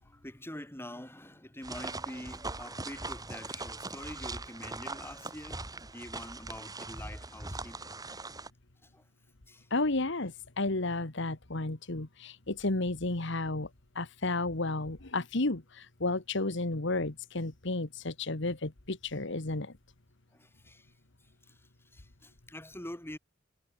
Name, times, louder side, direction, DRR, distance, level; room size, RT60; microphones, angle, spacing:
voice 1, 0.0-8.1 8.8-9.0 9.5-9.7 20.3-20.9 21.4-23.2, left 1 dB, 10° left, 4.6 m, -46 dB
sound 1, 1.6-8.5, right 3 dB, 20° right, 4.5 m, -41 dB
voice 2, 9.7-13.7 14.0-19.7, left 2 dB, 65° left, 1.9 m, -32 dB
head